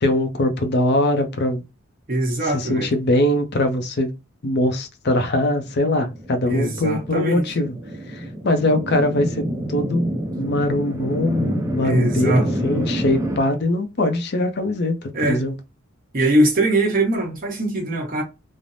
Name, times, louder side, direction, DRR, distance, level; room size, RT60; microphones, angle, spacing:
voice 1, 0.0-1.6 2.5-4.1 4.4-7.8 8.1-9.4 9.7-10.1 10.4-15.5, left 1 dB, 50° left, 0.5 m, -22 dB
voice 2, 2.1-2.9 6.5-7.5 11.8-12.5 15.1-15.4 16.1-18.2, right 1 dB, 40° right, 1.0 m, -21 dB
sound 1, 5.8-13.4, equal, 15° right, 0.4 m, -28 dB
3.2 x 2.0 x 2.5 m
head